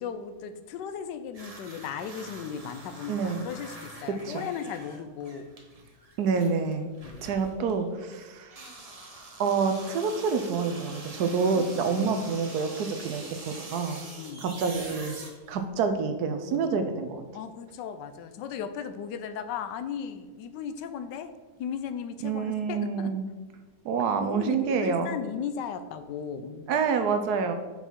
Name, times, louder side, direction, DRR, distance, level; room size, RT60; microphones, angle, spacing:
voice 1, 0.0-5.4 7.0-7.3 11.6-12.2 14.2-14.5 16.5-17.0 17.3-21.3 21.6-23.1 24.2-26.7, left 7 dB, 80° left, 10 dB, 1.2 m, -36 dB
sound 1, 1.3-7.8 8.4-15.9, right 2 dB, 30° right, 0.6 m, -45 dB
voice 2, 3.1-3.5 4.2-4.4 6.2-6.9 7.2-8.6 9.4-14.0 14.4-15.2 15.5-17.2 22.2-23.3 23.8-25.1 26.7-27.5, right 5 dB, 70° right, 8 dB, 1.1 m, -27 dB
5.6 x 5.4 x 4.6 m, 1.3 s
omnidirectional pair, 1.9 m